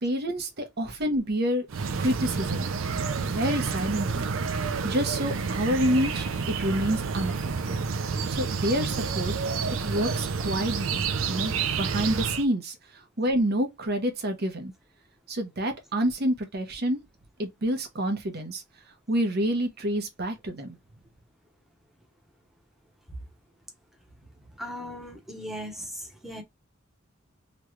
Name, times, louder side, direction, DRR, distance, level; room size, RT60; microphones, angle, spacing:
voice 1, 0.0-1.7 2.0-2.7 3.2-4.3 4.8-7.8 8.3-9.3 9.8-11.5 11.8-14.7 15.3-17.0 17.4-18.6 19.1-20.8, equal, 55° right, 0.9 m, -28 dB
sound 1, 1.7-12.5, right 5 dB, 75° right, 0.5 m, -29 dB
voice 2, 24.6-26.4, equal, ahead, 0.8 m, -38 dB
3.1 x 2.4 x 3.0 m
head